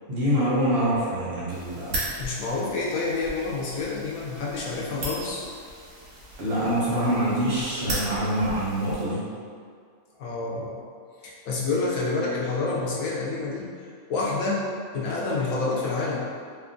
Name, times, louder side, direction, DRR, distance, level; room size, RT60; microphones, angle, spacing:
voice 1, 0.1-2.0 6.4-9.2, equal, 55° right, -9 dB, 0.7 m, -25 dB
sound 1, 1.5-9.0, right 1 dB, 85° right, 1.2 m, -37 dB
voice 2, 2.2-5.4 10.2-10.8 11.2-13.7 14.1-14.7 14.9-16.3, left 3 dB, 90° left, -5 dB, 1.0 m, -28 dB
2.8 x 2.4 x 2.5 m, 2.1 s
omnidirectional pair, 1.4 m